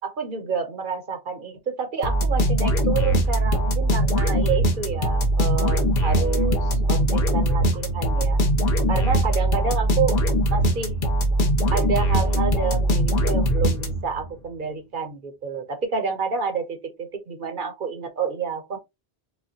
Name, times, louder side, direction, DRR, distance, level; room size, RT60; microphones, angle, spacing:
voice 1, 0.0-8.4 8.9-10.2 10.5-11.0 11.7-18.8, right 6 dB, 55° right, 0.9 m, -29 dB
sound 1, 2.0-14.3, right 1 dB, 55° left, 1.0 m, -21 dB
4.9 x 2.2 x 2.8 m
omnidirectional pair, 1.1 m